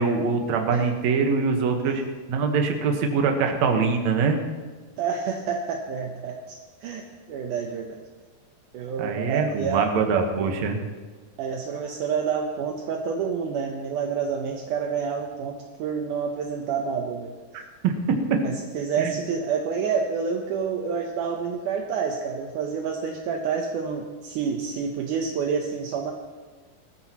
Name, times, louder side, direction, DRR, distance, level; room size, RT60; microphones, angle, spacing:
voice 1, 0.0-2.0 2.3-4.4 9.0-10.8 17.5-17.9 18.3-18.4 19.0-19.2, right 5 dB, 60° right, 3 dB, 1.9 m, -23 dB
voice 2, 5.0-8.0 8.7-9.9 11.4-17.3 18.4-26.1, right 6 dB, 75° right, 2 dB, 1.9 m, -28 dB
21.0 x 13.5 x 3.0 m, 1.4 s
omnidirectional pair, 4.8 m